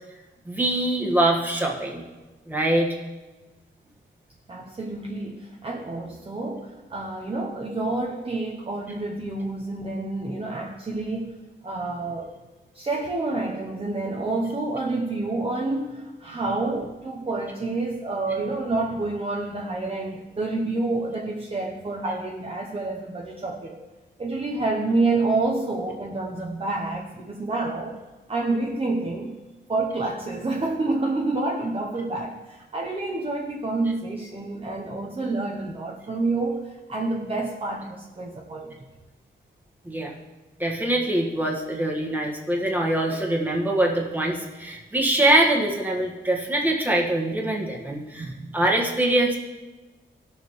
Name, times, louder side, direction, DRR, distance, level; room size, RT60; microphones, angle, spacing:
voice 1, 0.5-2.0 2.5-3.0 39.9-40.1 40.6-49.4, right 1 dB, 10° right, -1 dB, 1.6 m, -23 dB
voice 2, 4.5-11.3 11.6-12.3 12.7-23.8 24.2-28.0 28.3-29.4 29.7-38.8 48.2-48.6, right 2 dB, 30° right, -1 dB, 0.9 m, -28 dB
19.0 x 6.8 x 3.2 m, 1.2 s
wide cardioid pair, 160°, 20 cm